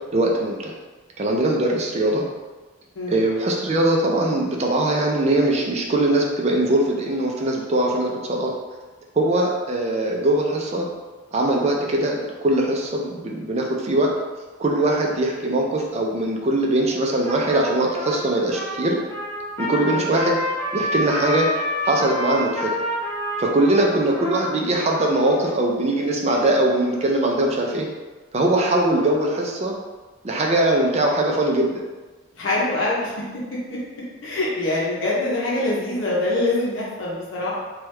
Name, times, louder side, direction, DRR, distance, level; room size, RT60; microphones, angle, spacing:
voice 1, 0.1-0.7 1.2-2.2 3.1-8.5 9.1-10.9 11.3-14.1 14.6-19.0 19.6-20.4 20.7-21.5 21.8-22.7 23.4-27.9 28.3-29.7 30.2-31.8, right 1 dB, 35° right, -1 dB, 0.4 m, -21 dB
Trumpet, 17.2-25.5, left 1 dB, 15° left, 0.8 m, -28 dB
voice 2, 32.3-33.1 33.9-37.5, left 2 dB, 75° left, -6 dB, 0.7 m, -24 dB
3.2 x 2.3 x 3.1 m, 1.3 s
head